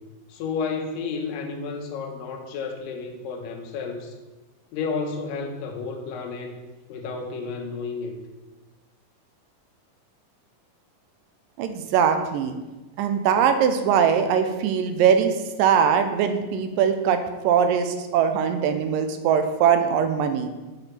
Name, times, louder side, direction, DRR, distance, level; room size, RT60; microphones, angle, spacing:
voice 1, 0.3-4.2 4.7-6.6 6.9-8.2, left 4 dB, 85° left, 4 dB, 2.6 m, -31 dB
voice 2, 11.6-12.6 13.0-20.5, right 7 dB, 85° right, 8 dB, 2.3 m, -21 dB
7.9 x 6.1 x 4.4 m, 1.1 s
omnidirectional pair, 3.9 m